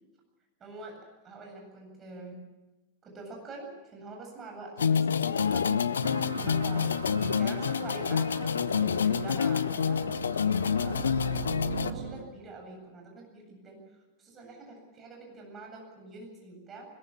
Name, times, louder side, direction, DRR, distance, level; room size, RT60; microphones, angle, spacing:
voice 1, 0.6-1.0 1.2-2.4 3.0-5.9 6.1-6.9 7.4-16.9, right 3 dB, 25° right, 0 dB, 8.0 m, -45 dB
sound 1, 4.8-11.9, left 6 dB, 70° left, 0.7 m, -27 dB
sound 2, 6.0-12.3, right 6 dB, 65° right, 2.0 m, -40 dB
21.5 x 21.0 x 7.4 m, 1.1 s
figure-of-eight pair, 90°, 0 cm